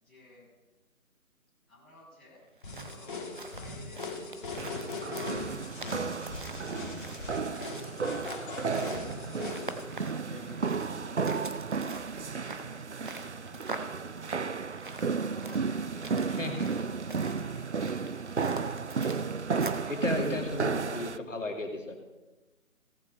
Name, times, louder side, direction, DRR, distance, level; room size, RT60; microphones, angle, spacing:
voice 1, 0.0-0.5 1.7-2.4 2.8-8.3 8.5-11.8 12.2-16.6 17.3-18.7, left 2 dB, ahead, -13 dB, 1.5 m, -55 dB
sound 1, 2.5-19.9, right 2 dB, 35° right, 1.0 m, -45 dB
sound 2, 2.6-9.8, left 3 dB, 35° left, 2.5 m, -40 dB
sound 3, 4.6-21.2, right 5 dB, 55° right, 0.5 m, -33 dB
voice 2, 10.3-10.6 16.4-16.7 19.9-22.0, left 2 dB, 60° left, 2 dB, 2.5 m, -34 dB
17.5 x 7.5 x 5.4 m, 1.2 s
figure-of-eight pair, 160°, 42 cm